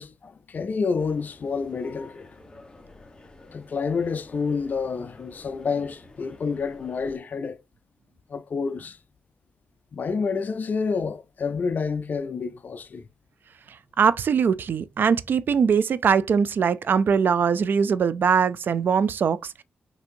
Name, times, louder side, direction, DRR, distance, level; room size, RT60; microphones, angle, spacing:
voice 1, 0.0-2.3 3.5-7.6 8.3-9.0 9.9-13.0, left 5 dB, 50° left, 0.4 m, -28 dB
sound 1, 1.0-7.2, left 2 dB, 25° left, 1.0 m, -49 dB
voice 2, 14.0-19.6, right 6 dB, 65° right, 0.4 m, -21 dB
6.1 x 2.7 x 2.6 m
cardioid pair, 75°, 4 cm